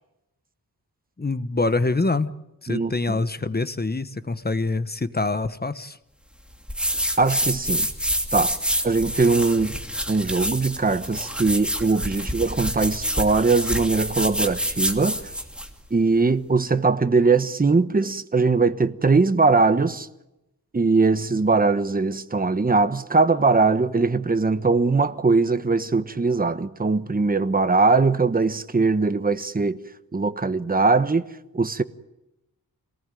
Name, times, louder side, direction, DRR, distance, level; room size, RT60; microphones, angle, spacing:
voice 1, 1.2-2.3 2.6-6.0, left 3 dB, 25° left, 1.2 m, -25 dB
voice 2, 2.7-3.2 7.2-7.9 8.3-8.6 8.8-9.7 10.1-15.2 15.9-20.1 20.7-29.8 30.1-31.2 31.5-31.8, right 4 dB, 25° right, 1.2 m, -21 dB
sound 1, 6.7-15.7, equal, 5° right, 2.8 m, -27 dB
27.0 x 18.5 x 9.2 m
wide cardioid pair, 110°, 36 cm